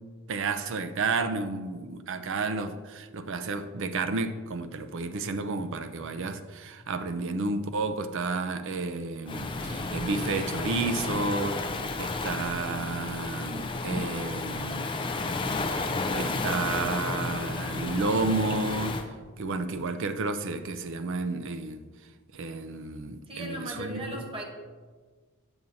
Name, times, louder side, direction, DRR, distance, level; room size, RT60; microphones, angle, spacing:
voice 1, 0.3-14.9 15.7-19.0 19.4-21.8 22.3-24.2, right 3 dB, 60° right, 0.5 m, -31 dB
Waves surf, 9.3-19.0, left 3 dB, 25° left, 0.4 m, -32 dB
voice 2, 23.3-24.4, right 1 dB, 25° right, 1.1 m, -37 dB
7.8 x 6.9 x 2.7 m
head